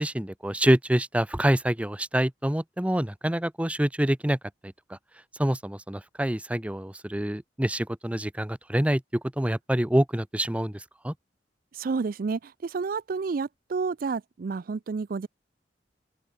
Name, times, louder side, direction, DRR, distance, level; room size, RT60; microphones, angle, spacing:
voice 1, 0.0-5.0 5.4-11.1, right 1 dB, 10° right, 0.7 m, -26 dB
voice 2, 11.7-15.3, right 4 dB, 55° right, 0.4 m, -30 dB
open air
head